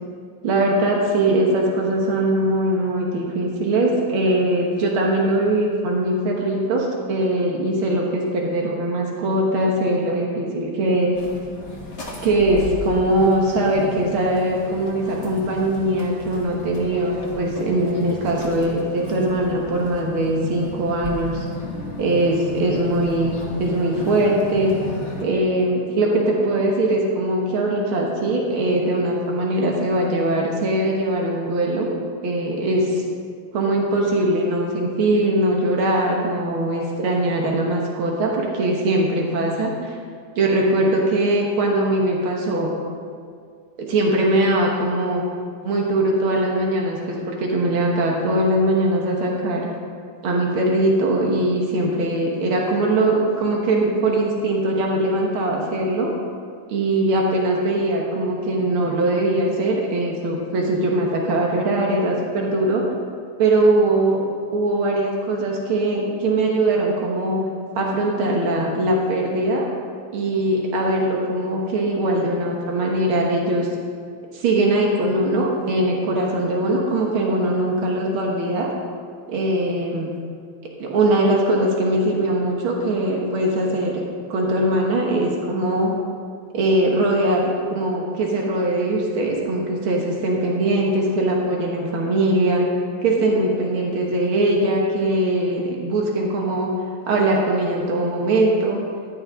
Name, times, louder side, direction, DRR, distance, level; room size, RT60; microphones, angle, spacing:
voice 1, 0.4-11.1 12.2-21.4 22.0-23.3 23.6-24.7 25.2-31.9 32.2-33.0 33.5-40.0 40.4-42.7 43.8-45.2 45.6-49.7 50.2-56.1 56.7-62.8 63.4-64.2 64.5-67.4 67.8-69.7 70.1-73.7 74.3-78.7 79.3-80.1 80.8-84.0 84.3-85.9 86.5-92.7 93.0-96.7 97.1-98.8, right 1 dB, 85° right, -1 dB, 2.2 m, -21 dB
sound 1, 11.1-25.2, left 2 dB, 35° left, 1.8 m, -34 dB
15.0 x 11.0 x 3.7 m, 2.2 s
omnidirectional pair, 2.3 m